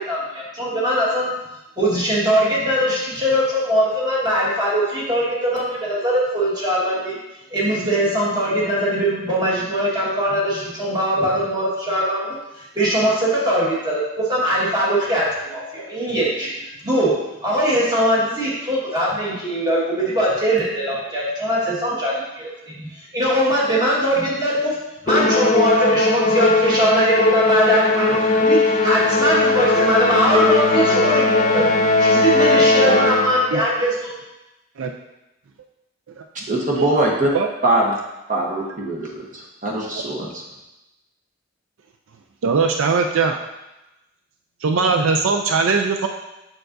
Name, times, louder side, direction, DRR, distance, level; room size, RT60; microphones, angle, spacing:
voice 1, 0.0-1.3 1.8-7.2 7.5-24.8 25.0-31.7 32.0-34.2, equal, 20° right, -6 dB, 1.5 m, -21 dB
Musical instrument, 25.1-33.6, left 3 dB, 35° left, 0.5 m, -18 dB
voice 2, 36.3-37.3 37.6-37.9 38.3-40.4, right 1 dB, 40° right, -2 dB, 1.0 m, -22 dB
voice 3, 42.4-43.4 44.6-46.1, right 4 dB, 75° right, 4 dB, 0.4 m, -21 dB
6.7 x 5.9 x 2.6 m, 0.96 s
head